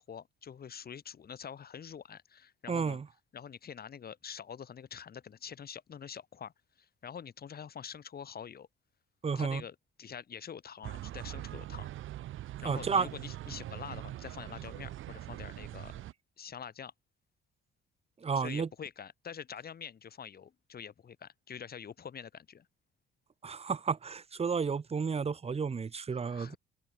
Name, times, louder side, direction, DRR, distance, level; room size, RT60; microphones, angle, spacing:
voice 1, 0.0-3.0 3.3-8.7 9.4-11.9 12.6-16.0 16.4-16.9 18.4-22.7 26.2-26.6, left 7 dB, 50° left, 3.8 m, -46 dB
voice 2, 2.7-3.1 9.2-9.6 12.6-13.1 18.2-18.7 23.4-26.6, right 5 dB, 30° right, 1.3 m, -32 dB
sound 1, 10.8-16.1, right 14 dB, 80° right, 4.7 m, -42 dB
cardioid pair, 90°, 20 cm